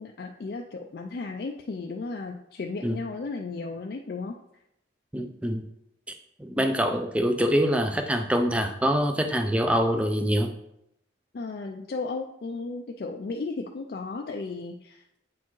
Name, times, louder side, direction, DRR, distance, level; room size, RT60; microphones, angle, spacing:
voice 1, 0.0-4.3 11.3-15.0, left 3 dB, 55° left, 2 dB, 0.4 m, -34 dB
voice 2, 5.1-5.7 6.1-10.5, equal, 5° right, 6 dB, 0.4 m, -25 dB
8.3 x 4.3 x 3.1 m, 0.81 s
head